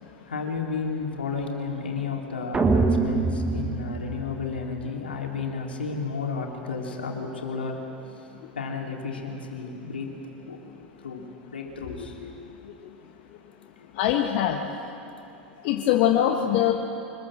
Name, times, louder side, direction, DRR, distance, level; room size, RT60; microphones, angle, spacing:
voice 1, 0.3-7.8 8.6-10.6 11.0-11.2 11.5-12.3 13.8-13.9 15.6-15.7, left 4 dB, 85° left, 0 dB, 3.5 m, -32 dB
sound 1, 2.5-4.8, right 3 dB, 20° right, 1.8 m, -24 dB
voice 2, 14.0-14.6 15.6-16.7, left 11 dB, 55° left, 3 dB, 1.5 m, -22 dB
25.0 x 21.0 x 7.7 m, 2.9 s
hypercardioid pair, 90°, 6 cm